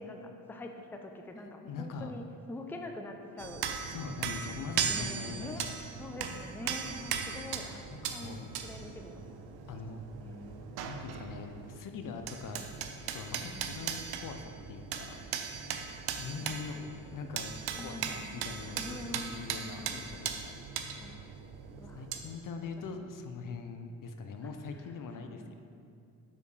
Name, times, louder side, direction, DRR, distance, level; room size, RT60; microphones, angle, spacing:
voice 1, 0.0-3.8 4.8-5.6 6.0-8.4 8.6-9.3 10.2-10.9 13.4-13.7 15.2-15.4 16.4-16.9 17.7-18.4 18.8-20.1 21.0-21.4 21.8-23.2 24.7-25.6, left 1 dB, 5° left, 4 dB, 0.5 m, -45 dB
voice 2, 1.6-2.1 3.9-5.8 6.3-6.4 7.9-8.5 9.7-10.0 10.8-12.6 13.1-15.2 16.2-16.8 17.1-17.5 17.8-20.5 21.9-25.6, left 4 dB, 55° left, 6 dB, 0.6 m, -42 dB
sound 1, 3.4-11.8 12.0-22.2, right 7 dB, 85° right, 0.6 m, -38 dB
5.4 x 4.4 x 4.8 m, 2.5 s
cardioid pair, 65°, 38 cm